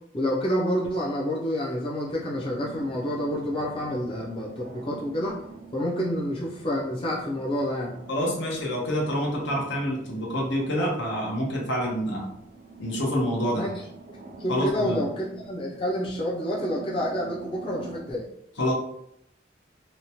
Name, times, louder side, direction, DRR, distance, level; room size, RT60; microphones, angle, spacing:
voice 1, 0.1-5.4 5.7-8.0 13.5-13.7 14.4-18.3, equal, 30° left, -5 dB, 0.4 m, -28 dB
sound 1, 2.1-18.0, right 3 dB, 50° right, 0.5 m, -46 dB
voice 2, 8.1-12.3 12.8-13.7 14.5-15.0 18.6-18.7, equal, 75° left, -2 dB, 0.8 m, -27 dB
2.9 x 2.1 x 2.8 m, 0.74 s
head